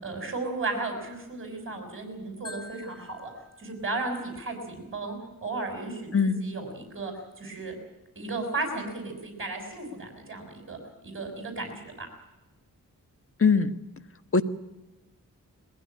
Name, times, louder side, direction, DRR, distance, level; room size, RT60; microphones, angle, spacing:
voice 1, 0.0-3.3 3.6-7.7 8.2-12.1, right 3 dB, 35° right, 4 dB, 6.0 m, -35 dB
Marimba xylophone, 2.4-4.5, left 2 dB, 10° left, 2.5 m, -48 dB
voice 2, 6.1-6.5 13.4-13.7 14.3-14.4, left 5 dB, 40° left, 11 dB, 1.4 m, -21 dB
21.5 x 16.0 x 9.9 m, 1.0 s
wide cardioid pair, 90°, 34 cm